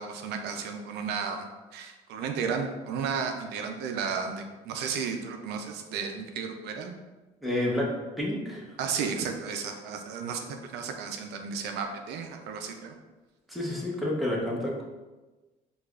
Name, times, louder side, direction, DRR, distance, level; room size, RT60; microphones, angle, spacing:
voice 1, 0.0-6.9 8.8-12.9, right 6 dB, 80° right, 4 dB, 0.4 m, -33 dB
voice 2, 7.4-7.9 8.2-8.7 13.5-14.8, left 1 dB, ahead, -4 dB, 0.8 m, -29 dB
4.7 x 2.4 x 2.3 m, 1.2 s
cardioid pair, 110°, 17 cm